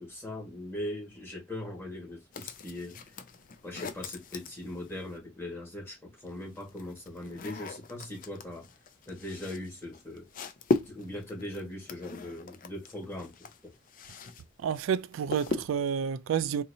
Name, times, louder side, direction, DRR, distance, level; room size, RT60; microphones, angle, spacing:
voice 1, 0.0-3.2 3.6-8.6 9.1-10.3 10.8-13.7, left 1 dB, 15° left, 1.6 m, -40 dB
sound 1, 2.3-5.2 6.2-14.4 14.7-16.0, left 3 dB, 45° left, 0.4 m, -38 dB
voice 2, 14.6-16.6, right 7 dB, 85° right, 0.3 m, -29 dB
4.1 x 2.7 x 2.7 m
head